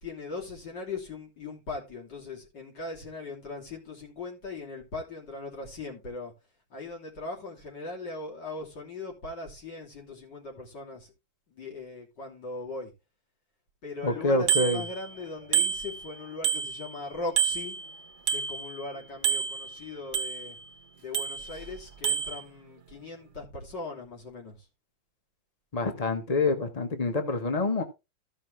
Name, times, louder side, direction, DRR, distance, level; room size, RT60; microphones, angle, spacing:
voice 1, 0.0-6.3 6.7-11.1 11.5-12.9 13.8-17.8 18.3-20.6 21.0-24.6, left 3 dB, 55° left, 3.7 m, -39 dB
voice 2, 14.0-14.8 25.7-27.8, left 2 dB, 25° left, 1.0 m, -26 dB
Bicycle bell, 14.5-15.2 15.5-17.0 17.4-18.9 19.2-20.7 21.1-21.7 22.0-22.4, right 7 dB, 55° right, 0.7 m, -29 dB
14.5 x 5.7 x 3.3 m
omnidirectional pair, 2.2 m